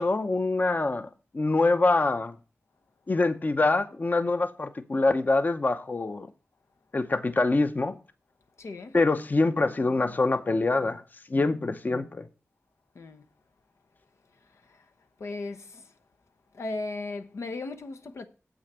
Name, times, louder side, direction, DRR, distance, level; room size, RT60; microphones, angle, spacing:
voice 1, 0.0-2.4 3.1-6.3 6.9-8.0 8.9-11.0 11.3-12.3, left 3 dB, 40° left, 0.7 m, -25 dB
voice 2, 8.6-9.0 12.9-13.2 14.4-14.9 15.2-15.9 16.5-18.3, left 3 dB, 85° left, 0.9 m, -37 dB
7.8 x 6.3 x 6.8 m
wide cardioid pair, 105°, 5 cm